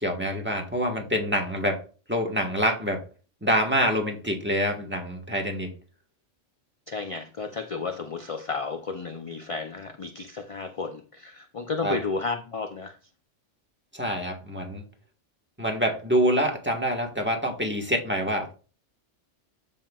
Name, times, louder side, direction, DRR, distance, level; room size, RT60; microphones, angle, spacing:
voice 1, 0.0-1.8 2.1-3.0 3.4-5.7 11.8-12.0 13.9-14.8 15.6-18.5, equal, 10° right, 1.3 m, -26 dB
voice 2, 6.9-13.0, left 4 dB, 40° left, 0.5 m, -32 dB
13.0 x 5.4 x 2.3 m
omnidirectional pair, 1.3 m